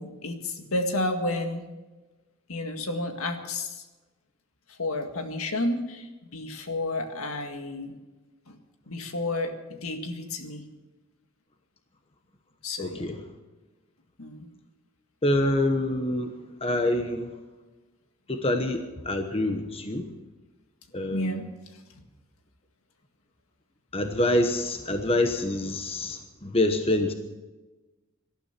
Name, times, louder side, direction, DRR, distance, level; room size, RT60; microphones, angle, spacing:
voice 1, 0.0-1.6 2.5-3.9 4.7-8.0 8.5-8.6 8.9-10.7 12.6-13.1 14.2-14.5 21.1-21.5, left 2 dB, 70° left, 5 dB, 1.9 m, -31 dB
voice 2, 12.8-13.2 15.2-16.3 16.6-17.3 18.3-20.1 20.9-21.4 23.9-27.1, left 1 dB, 25° left, 6 dB, 1.1 m, -26 dB
18.5 x 13.0 x 5.9 m, 1.2 s
head